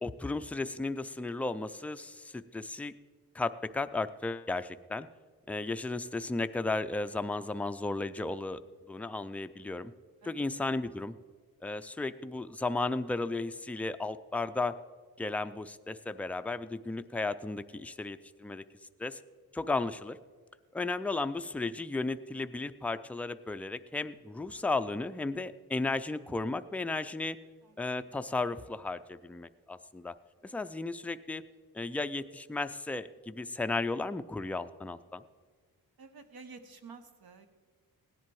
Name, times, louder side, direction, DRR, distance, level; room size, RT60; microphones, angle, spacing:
voice 1, 0.0-2.9 3.3-5.1 5.5-8.6 8.9-9.9 10.3-11.1 11.6-14.8 15.2-18.6 19.0-19.2 19.5-20.2 20.7-27.4 27.8-30.1 30.4-31.4 31.7-35.2, left 3 dB, 5° left, 10 dB, 0.3 m, -34 dB
voice 2, 36.0-37.5, right 4 dB, 70° right, 8 dB, 1.3 m, -51 dB
17.0 x 10.0 x 4.6 m, 1.5 s
wide cardioid pair, 120°, 38 cm